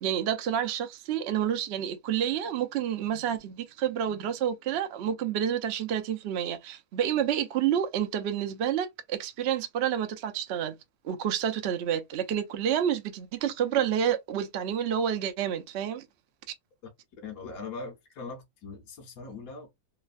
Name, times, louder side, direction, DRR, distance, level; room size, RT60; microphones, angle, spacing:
voice 1, 0.0-10.8 11.0-16.0, right 9 dB, 70° right, 0.6 m, -29 dB
voice 2, 17.2-19.7, left 4 dB, 65° left, 1.1 m, -41 dB
3.1 x 2.1 x 2.4 m
omnidirectional pair, 1.7 m